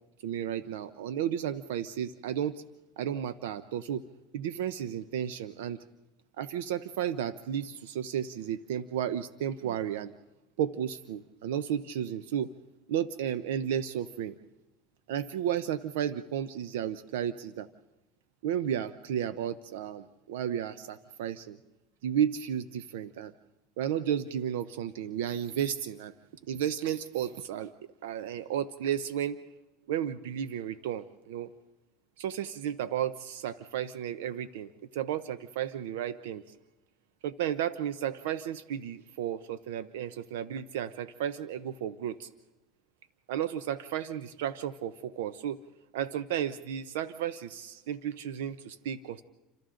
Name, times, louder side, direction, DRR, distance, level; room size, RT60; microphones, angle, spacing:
voice 1, 0.2-2.6 3.0-4.0 4.3-5.8 6.4-10.1 10.6-12.5 12.9-14.3 15.1-17.7 18.4-21.6 22.0-23.3 23.8-26.1 26.5-27.7 28.0-29.4 29.9-31.5 32.2-36.5 37.2-42.3 43.3-45.6 45.9-49.2, right 10 dB, 90° right, 13 dB, 0.8 m, -33 dB
29.5 x 26.5 x 3.8 m, 1.1 s
supercardioid pair, 115°, 0 cm